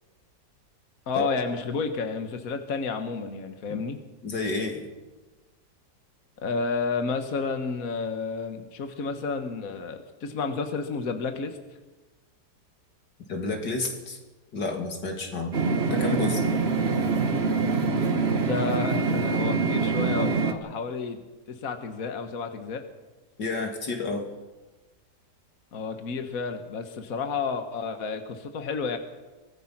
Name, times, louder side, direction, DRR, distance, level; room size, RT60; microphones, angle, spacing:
voice 1, 1.1-4.0 6.4-11.6 18.4-21.2 21.5-22.8 25.7-29.0, left 4 dB, 55° left, 7 dB, 1.7 m, -31 dB
voice 2, 4.2-4.9 13.3-14.2 14.5-15.5 15.9-16.4 23.4-24.2, left 3 dB, 85° left, 3 dB, 3.3 m, -30 dB
sound 1, 15.5-20.5, right 4 dB, 40° right, 1.6 m, -25 dB
24.0 x 18.0 x 6.0 m, 1.2 s
omnidirectional pair, 1.8 m